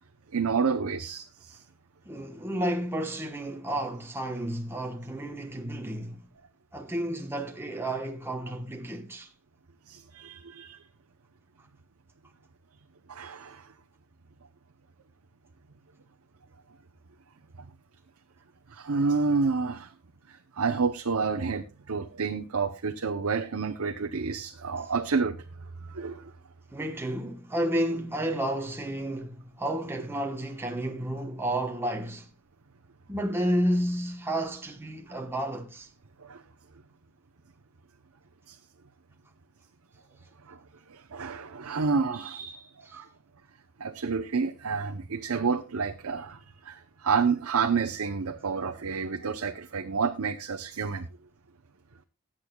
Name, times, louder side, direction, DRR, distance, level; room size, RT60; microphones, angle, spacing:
voice 1, 0.3-1.6 9.9-10.8 13.1-13.7 18.7-19.9 20.3-25.4 25.9-26.3 36.2-36.4 38.5-38.6 40.4-40.6 40.9-43.1 43.8-51.1, right 5 dB, 80° right, 0.8 m, -29 dB
voice 2, 2.1-6.2 6.7-9.3 26.7-32.3 33.1-35.9, right 1 dB, 10° right, 1.1 m, -31 dB
20.0 x 8.8 x 2.3 m
head